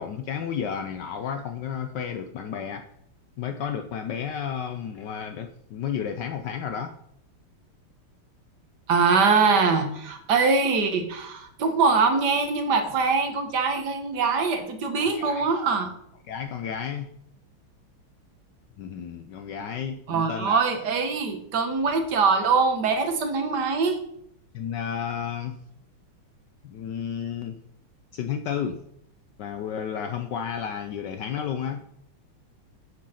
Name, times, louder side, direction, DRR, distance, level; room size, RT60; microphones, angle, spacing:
voice 1, 0.0-2.9 3.4-7.0 15.0-15.5 16.3-17.1 18.8-20.6 24.5-25.6 26.6-27.6 28.1-28.8 29.4-31.8, left 8 dB, 70° left, 8 dB, 1.1 m, -32 dB
voice 2, 8.9-15.9 20.1-24.0, right 4 dB, 55° right, 6 dB, 1.6 m, -23 dB
7.8 x 6.4 x 5.7 m, 0.70 s
omnidirectional pair, 2.4 m